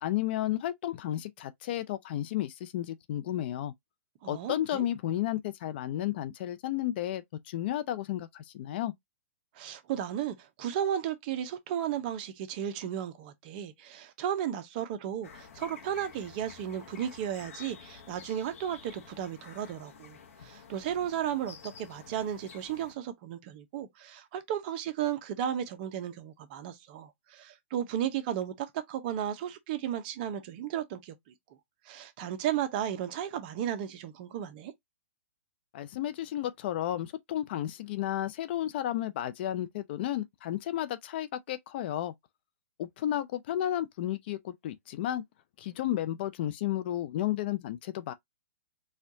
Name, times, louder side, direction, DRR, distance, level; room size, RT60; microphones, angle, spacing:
voice 1, 0.0-3.7 4.3-8.9 35.7-42.1 42.8-45.2 45.6-48.1, left 12 dB, 45° left, 0.5 m, -32 dB
voice 2, 4.2-4.9 9.5-20.2 20.4-31.3 31.9-34.7, right 10 dB, 40° right, 0.7 m, -34 dB
sound 1, 15.2-22.9, left 6 dB, 70° left, 0.9 m, -50 dB
4.3 x 2.3 x 2.6 m
hypercardioid pair, 145°, 8 cm